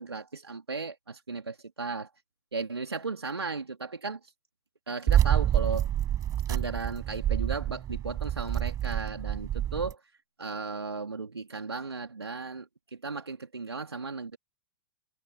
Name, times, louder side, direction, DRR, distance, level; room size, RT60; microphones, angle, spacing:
voice 1, 0.0-2.1 2.5-4.2 4.9-5.9 6.5-10.0 10.4-14.4, right 4 dB, 80° right, 3.2 m, -36 dB
sound 1, 5.1-9.9, right 11 dB, 25° right, 7.8 m, -27 dB
figure-of-eight pair, 105°, 13 cm